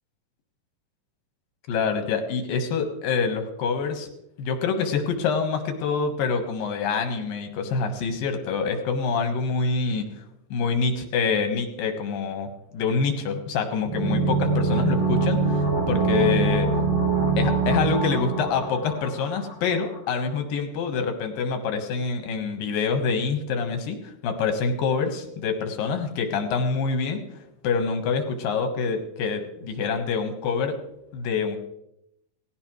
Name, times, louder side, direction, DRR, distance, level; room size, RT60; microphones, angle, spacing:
voice 1, 1.7-4.1 4.4-10.2 10.5-16.7 17.4-27.2 27.6-30.8 31.1-31.6, left 5 dB, 85° left, 6 dB, 3.1 m, -26 dB
sound 1, 13.8-19.5 19.8-19.9, right 4 dB, 35° right, 3.7 m, -23 dB
19.0 x 15.5 x 3.2 m, 0.82 s
omnidirectional pair, 3.9 m